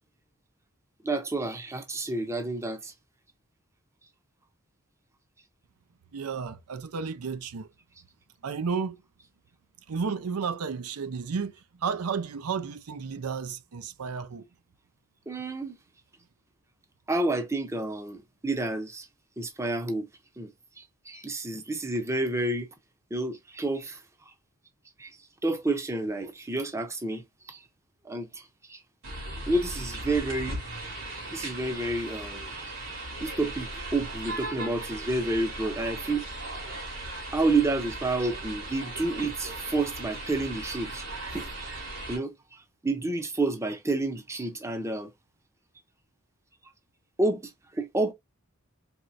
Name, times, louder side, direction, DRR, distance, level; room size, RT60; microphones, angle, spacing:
voice 1, 1.0-2.9 15.3-15.8 17.1-19.1 19.4-20.1 20.4-20.5 20.8-22.7 23.1-24.0 25.0-25.2 25.4-27.6 28.0-28.8 29.5-30.6 31.3-32.7 33.2-36.2 37.3-41.0 41.3-41.7 42.1-45.1 47.2-48.1, right 2 dB, 15° right, 0.6 m, -30 dB
voice 2, 6.1-7.7 8.4-9.0 9.9-14.4, right 5 dB, 90° right, 0.5 m, -32 dB
sound 1, 29.0-42.2, right 2 dB, 60° right, 2.6 m, -37 dB
4.3 x 3.2 x 2.5 m
head